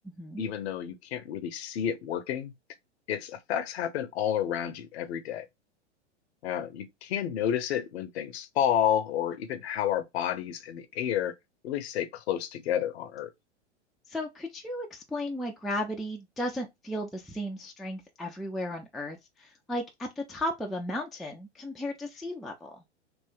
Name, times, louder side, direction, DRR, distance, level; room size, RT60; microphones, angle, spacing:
voice 1, 0.4-2.5 3.1-5.5 6.4-11.3 11.6-13.3, left 10 dB, 60° left, 0.8 m, -30 dB
voice 2, 14.1-22.8, left 1 dB, ahead, 0.4 m, -35 dB
3.3 x 2.5 x 3.7 m
hypercardioid pair, 105°, 35 cm